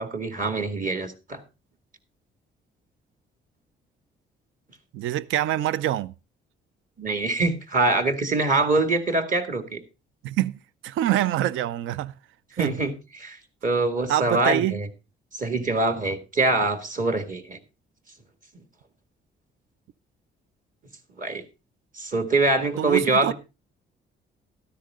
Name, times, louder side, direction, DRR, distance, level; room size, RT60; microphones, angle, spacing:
voice 1, 0.0-1.4 7.0-9.8 12.6-13.4 13.6-14.9 15.3-17.6 21.2-21.4 22.0-23.3, right 2 dB, 40° right, 2.1 m, -24 dB
voice 2, 4.9-6.1 10.2-10.6 10.8-12.1 12.5-12.8 14.1-14.8 22.8-23.3, right 13 dB, 80° right, 0.5 m, -25 dB
13.0 x 10.5 x 3.6 m
cardioid pair, 90°, 20 cm